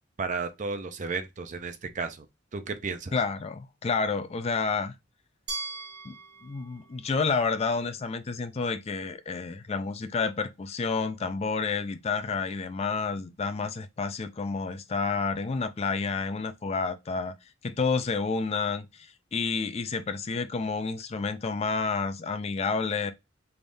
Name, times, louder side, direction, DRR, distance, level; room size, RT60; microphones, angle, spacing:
voice 1, 0.2-2.3 2.5-3.1, right 4 dB, 40° right, 0.5 m, -33 dB
voice 2, 3.1-4.9 6.0-6.2 6.4-17.3 17.6-23.1, left 4 dB, 35° left, 0.4 m, -30 dB
Glass, 5.5-8.4, right 3 dB, 60° right, 1.1 m, -41 dB
3.5 x 3.5 x 2.5 m
head